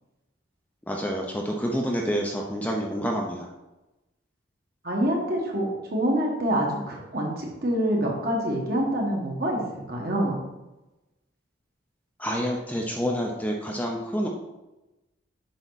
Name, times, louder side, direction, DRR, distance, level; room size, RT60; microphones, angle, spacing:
voice 1, 0.9-3.5 12.2-14.3, equal, 10° left, 0 dB, 0.7 m, -28 dB
voice 2, 4.8-10.4, right 1 dB, 50° right, -1 dB, 1.9 m, -26 dB
8.1 x 5.6 x 4.1 m, 1.0 s
head